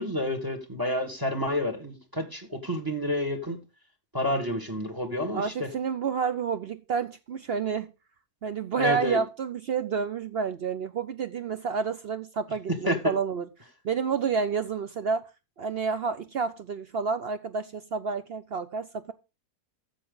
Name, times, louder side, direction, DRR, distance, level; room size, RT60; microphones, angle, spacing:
voice 1, 0.0-3.6 4.1-5.7 8.8-9.2 12.9-13.0, left 1 dB, 15° right, 1.8 m, -29 dB
voice 2, 5.3-7.9 8.4-13.5 13.8-15.3 15.6-19.1, right 6 dB, 65° right, 0.6 m, -29 dB
12.5 x 7.2 x 3.9 m
omnidirectional pair, 1.7 m